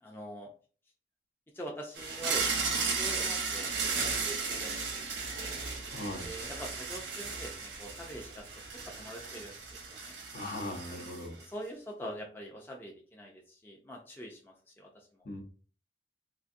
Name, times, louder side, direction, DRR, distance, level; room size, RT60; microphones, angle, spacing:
voice 1, 0.0-0.5 1.5-2.5 2.7-5.5 6.2-8.5 8.8-9.6 9.9-10.1 11.0-11.1 11.5-15.1, equal, 10° left, -1 dB, 0.4 m, -44 dB
sound 1, 2.0-11.4, right 4 dB, 85° right, 0.8 m, -35 dB
voice 2, 5.9-6.3 10.3-11.4 15.2-15.4, left 1 dB, 55° left, 3 dB, 0.7 m, -39 dB
3.8 x 2.5 x 2.5 m, 0.39 s
head